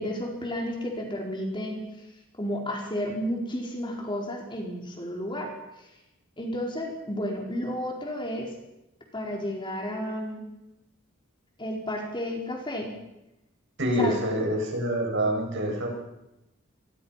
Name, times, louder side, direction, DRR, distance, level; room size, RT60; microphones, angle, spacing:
voice 1, 0.0-1.8 2.4-5.5 5.8-5.9 6.4-8.5 9.1-10.4 11.6-12.9 14.0-14.1, equal, 20° left, 0 dB, 4.7 m, -32 dB
voice 2, 13.8-15.9, equal, 60° right, 1 dB, 7.4 m, -26 dB
26.5 x 22.5 x 5.9 m, 0.93 s
head